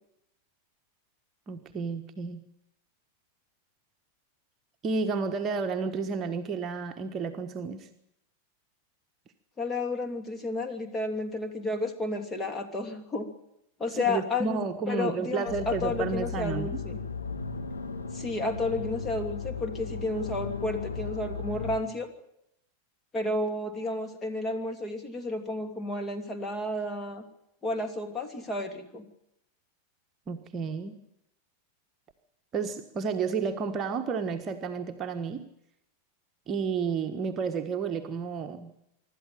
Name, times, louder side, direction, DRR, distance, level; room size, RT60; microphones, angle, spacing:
voice 1, 1.5-2.4 4.8-7.9 13.9-16.8 30.3-31.0 32.5-35.4 36.5-38.7, right 5 dB, 30° right, 5 dB, 1.4 m, -31 dB
voice 2, 9.6-13.3 13.8-17.0 18.1-22.1 23.1-27.2 27.6-29.1, left 2 dB, 20° left, 5 dB, 2.7 m, -32 dB
sound 1, 15.5-21.8, left 5 dB, 75° left, 2.8 m, -36 dB
25.0 x 12.5 x 9.2 m, 0.81 s
figure-of-eight pair, 90°, 0 cm